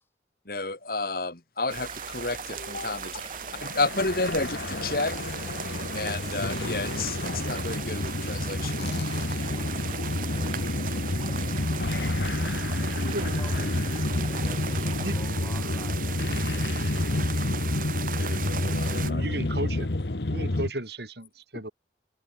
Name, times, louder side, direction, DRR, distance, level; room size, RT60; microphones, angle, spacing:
voice 1, 0.5-3.1 3.6-5.1 5.9-8.8 18.2-19.2, left 3 dB, 55° left, 2.7 m, -31 dB
sound 1, 1.6-15.1, right 4 dB, 30° right, 7.8 m, -44 dB
sound 2, 1.7-19.1, right 7 dB, 50° right, 1.7 m, -38 dB
voice 2, 3.0-3.4 13.2-16.2, left 1 dB, 15° left, 6.7 m, -48 dB
sound 3, 3.5-20.7, left 2 dB, 75° left, 1.2 m, -29 dB
voice 3, 18.6-19.9 20.3-21.7, right 1 dB, 70° right, 4.7 m, -34 dB
head